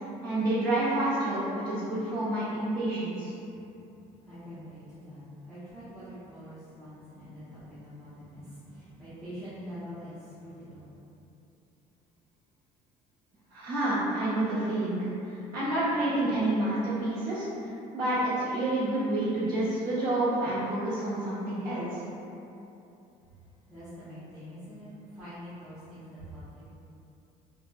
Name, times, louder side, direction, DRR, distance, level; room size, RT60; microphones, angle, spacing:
voice 1, 0.2-3.3 13.5-17.5 17.9-22.0, right 1 dB, 75° right, -10 dB, 1.2 m, -29 dB
voice 2, 4.1-10.9 23.7-26.6, equal, 5° right, -16 dB, 0.6 m, -45 dB
3.9 x 2.1 x 2.3 m, 2.8 s
cardioid pair, 170°, 15 cm